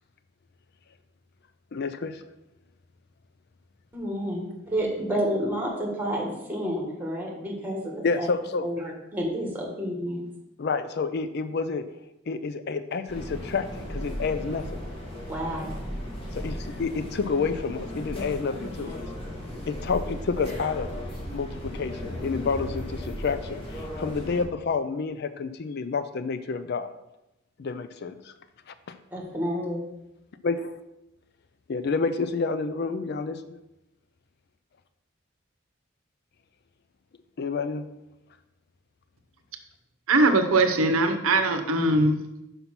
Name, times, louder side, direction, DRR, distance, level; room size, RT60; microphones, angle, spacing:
voice 1, 1.7-2.2 8.0-8.7 10.6-11.8 12.3-14.8 16.3-19.0 19.7-20.9 21.3-26.9 27.6-28.3 28.7-29.0 30.4-30.8 31.7-33.6 37.4-37.8, left 4 dB, 50° left, 12 dB, 0.4 m, -29 dB
voice 2, 3.9-8.3 8.6-10.2 15.3-15.6 29.1-29.8, equal, 10° right, -1 dB, 1.7 m, -30 dB
sound 1, 13.1-24.5, equal, 25° left, 1.8 m, -36 dB
voice 3, 40.1-42.4, right 2 dB, 80° right, 7 dB, 0.8 m, -21 dB
5.8 x 5.4 x 5.9 m, 0.91 s
head